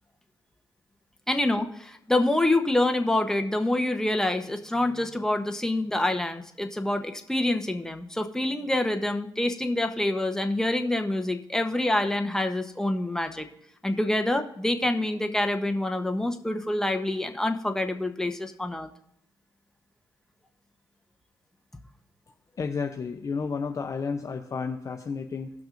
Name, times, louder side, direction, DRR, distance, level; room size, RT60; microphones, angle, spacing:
voice 1, 1.3-13.5 13.8-18.9, left 1 dB, 5° left, 5 dB, 0.9 m, -26 dB
voice 2, 22.6-25.5, left 5 dB, 40° left, 4 dB, 0.7 m, -31 dB
17.0 x 6.0 x 2.6 m, 0.74 s
cardioid pair, 85°, 9 cm